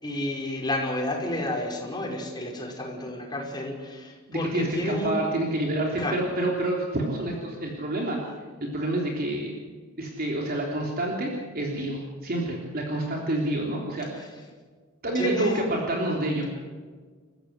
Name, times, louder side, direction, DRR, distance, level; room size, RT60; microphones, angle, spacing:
voice 1, 0.0-5.2 6.0-6.2 14.1-14.3 15.1-15.7 16.4-16.5, left 1 dB, 20° left, 0 dB, 5.4 m, -31 dB
voice 2, 4.3-8.2 8.6-9.5 10.0-14.2 15.0-16.4, right 1 dB, 45° right, -1 dB, 3.4 m, -28 dB
29.0 x 14.5 x 8.2 m, 1.5 s
head